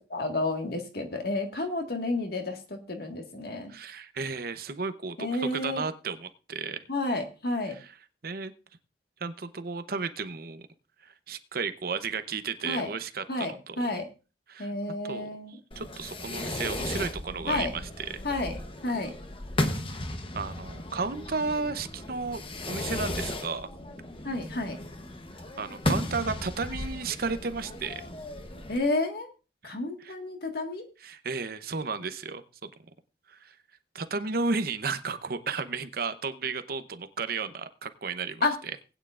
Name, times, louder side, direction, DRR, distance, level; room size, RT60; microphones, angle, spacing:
voice 1, 0.1-3.7 5.2-5.8 6.9-7.8 12.6-12.9 13.3-14.1 14.6-15.6 17.5-17.7 18.2-19.1 24.2-24.8 28.7-29.3 29.6-30.9 38.4-38.5, left 2 dB, 55° left, 4 dB, 1.7 m, -30 dB
voice 2, 3.7-6.8 7.7-7.9 8.2-8.5 9.2-10.6 11.0-13.8 14.5-14.7 15.0-18.2 20.3-23.7 25.6-28.1 29.6-30.1 31.0-32.7 33.3-33.5 33.9-38.8, right 4 dB, 50° right, 10 dB, 0.8 m, -33 dB
Fireworks, 15.7-28.8, left 1 dB, 30° left, 0.9 m, -35 dB
19.5 x 9.1 x 2.5 m, 0.32 s
head